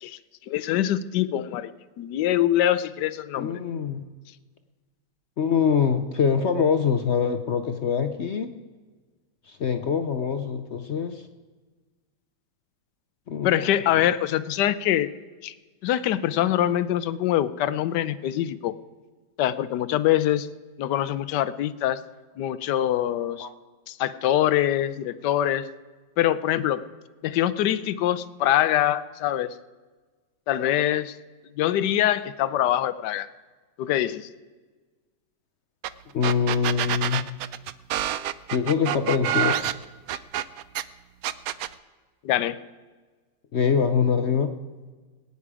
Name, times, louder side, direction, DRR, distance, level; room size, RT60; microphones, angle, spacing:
voice 1, 0.5-1.7 2.0-3.6 13.4-15.1 15.4-15.5 15.8-18.7 19.4-20.5 20.8-22.0 22.4-23.5 23.9-25.7 26.2-26.8 27.2-29.5 30.5-31.2 31.6-33.3 33.8-34.3 42.2-42.6, left 12 dB, 75° left, 15 dB, 1.2 m, -24 dB
voice 2, 3.4-4.1 5.4-8.5 9.5-11.2 13.3-13.5 23.4-23.5 36.1-37.3 38.5-39.6 43.5-44.5, left 6 dB, 60° left, 8 dB, 0.7 m, -24 dB
sound 1, 35.8-35.9 36.2-40.8 41.2-41.7, right 11 dB, 70° right, 0.9 m, -27 dB
21.0 x 9.6 x 4.8 m, 1.4 s
omnidirectional pair, 1.9 m